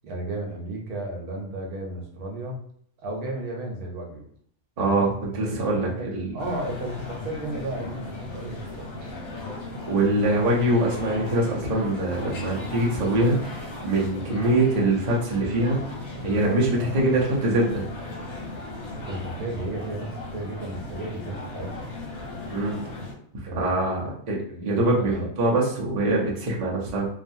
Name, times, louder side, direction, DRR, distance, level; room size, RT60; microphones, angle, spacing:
voice 1, 0.0-2.6 3.0-4.3 4.8-5.5 5.8-9.1 16.2-17.1 18.9-21.7 23.4-23.9 24.5-25.3, right 2 dB, 80° right, 0 dB, 1.2 m, -34 dB
voice 2, 4.8-6.4 9.9-15.8 16.2-17.8 22.5-22.8 23.5-24.4 24.6-27.1, right 1 dB, 45° right, -3 dB, 0.5 m, -23 dB
sound 1, 6.4-23.1, left 2 dB, 75° left, 1.4 m, -37 dB
2.9 x 2.3 x 2.6 m, 0.64 s
omnidirectional pair, 1.5 m